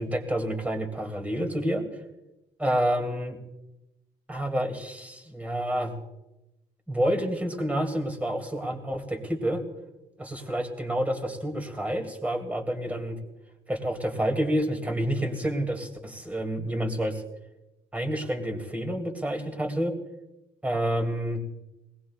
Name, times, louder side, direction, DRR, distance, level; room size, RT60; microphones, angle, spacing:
voice 1, 0.0-1.8 2.6-3.4 4.3-5.9 6.9-9.6 10.2-13.2 13.7-17.2 17.9-19.9 20.6-21.4, right 1 dB, 10° right, 3 dB, 2.4 m, -29 dB
20.5 x 18.5 x 2.4 m, 0.95 s
cardioid pair, 110°, 17 cm